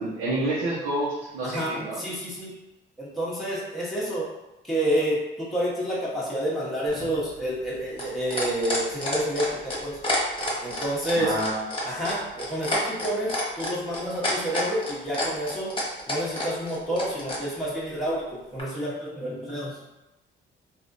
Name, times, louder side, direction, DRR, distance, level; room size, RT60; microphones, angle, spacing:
voice 1, 0.0-2.0 11.2-11.7, right 1 dB, 75° right, -8 dB, 0.9 m, -28 dB
voice 2, 1.4-2.6 3.0-4.3 4.6-10.0 10.6-11.4 11.8-15.8 16.1-19.8, equal, ahead, -8 dB, 1.0 m, -29 dB
sound 1, 6.9-17.4 18.6-18.7, left 1 dB, 25° left, 1.1 m, -29 dB
3.4 x 2.5 x 2.6 m, 1.0 s
cardioid pair, 90°, 20 cm